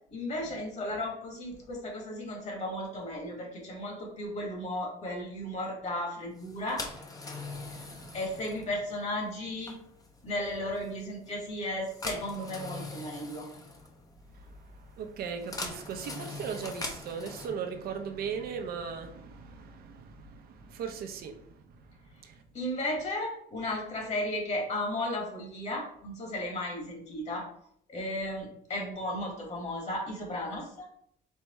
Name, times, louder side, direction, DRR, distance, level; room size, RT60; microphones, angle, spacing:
voice 1, 0.1-6.8 8.1-9.8 10.2-13.5 22.5-27.5 27.9-30.8, left 1 dB, 40° left, 1.8 m, -35 dB
sound 1, 6.4-17.5, left 3 dB, 20° left, 0.8 m, -42 dB
voice 2, 7.5-8.2 14.3-22.4, right 6 dB, 65° right, 0.8 m, -39 dB
4.5 x 3.3 x 3.1 m
cardioid pair, 110°, 17 cm